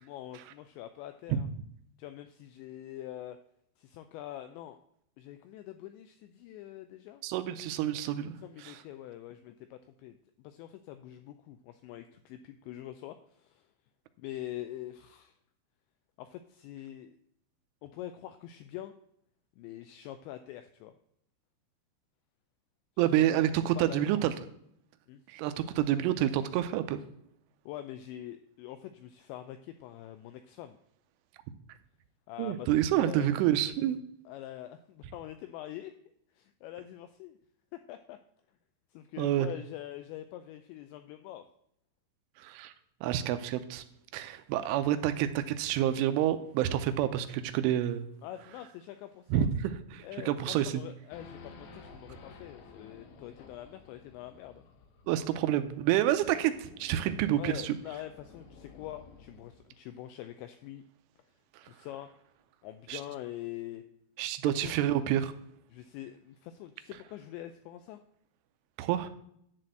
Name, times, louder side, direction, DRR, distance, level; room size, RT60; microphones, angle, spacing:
voice 1, 0.0-1.5 2.0-3.4 3.8-4.8 5.2-7.2 8.4-13.7 14.2-15.3 16.2-17.2 17.8-18.9 19.6-20.9 23.1-24.3 25.1-25.2 27.7-30.8 32.3-33.5 34.3-35.9 36.4-37.4 37.7-38.2 38.9-41.5 48.2-49.5 50.0-54.7 57.4-60.8 61.6-62.1 62.6-63.8 64.4-64.8 65.7-68.0, left 13 dB, 85° left, 9 dB, 2.5 m, -44 dB
voice 2, 7.2-8.4 8.6-8.8 23.0-24.3 25.3-27.0 32.4-34.0 39.2-39.5 42.4-42.7 43.0-43.8 44.1-48.1 49.3-50.8 55.1-57.8 62.9-63.0 64.2-65.3 68.8-69.2, right 11 dB, 85° right, 10 dB, 3.1 m, -28 dB
Race car auto racing / Idling / Accelerating revving vroom, 51.1-59.7, left 4 dB, 70° left, 2.4 m, -53 dB
11.0 x 4.2 x 7.7 m, 0.72 s
omnidirectional pair, 5.6 m